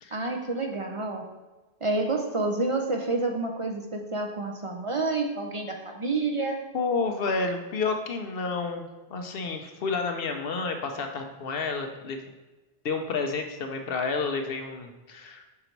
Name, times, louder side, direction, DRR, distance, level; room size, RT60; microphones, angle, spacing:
voice 1, 0.1-1.3 1.8-6.6, right 3 dB, 40° right, 2 dB, 0.5 m, -29 dB
voice 2, 6.7-12.3 12.8-15.5, left 4 dB, 65° left, 5 dB, 0.9 m, -30 dB
5.8 x 4.0 x 4.5 m, 1.2 s
omnidirectional pair, 1.1 m